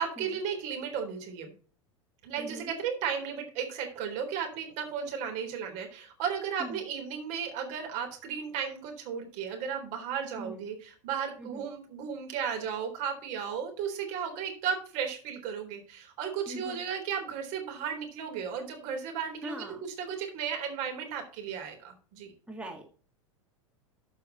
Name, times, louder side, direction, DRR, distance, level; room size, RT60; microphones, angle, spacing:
voice 1, 0.0-1.5 2.2-22.3, right 7 dB, 50° right, 3 dB, 3.9 m, -35 dB
voice 2, 2.4-2.7 6.6-6.8 10.4-10.6 11.4-11.6 16.5-16.8 19.4-19.8 22.5-22.9, right 1 dB, 5° right, 2 dB, 1.9 m, -41 dB
13.5 x 5.6 x 4.2 m, 0.42 s
hypercardioid pair, 90°, 16 cm